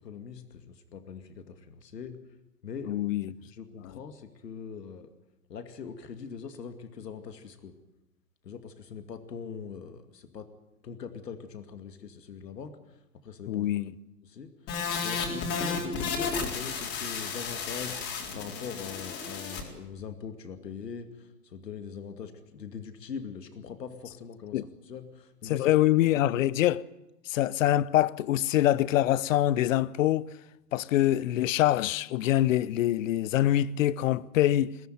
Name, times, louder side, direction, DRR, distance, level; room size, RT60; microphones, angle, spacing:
voice 1, 0.0-2.2 2.6-2.9 3.5-5.1 5.5-7.7 8.4-10.5 10.8-12.7 13.2-13.7 14.3-14.5 15.0-18.0 18.3-21.1 21.4-24.6 24.9-25.9, left 6 dB, 80° left, 2.5 m, -42 dB
voice 2, 2.9-3.3 3.8-4.0 13.5-13.9 24.5-24.7 25.5-26.8 27.3-30.3 30.7-34.8, left 13 dB, 50° left, 0.8 m, -25 dB
sound 1, 14.7-19.6, left 5 dB, 30° left, 4.2 m, -33 dB
21.5 x 15.5 x 9.3 m
hypercardioid pair, 125°, 49 cm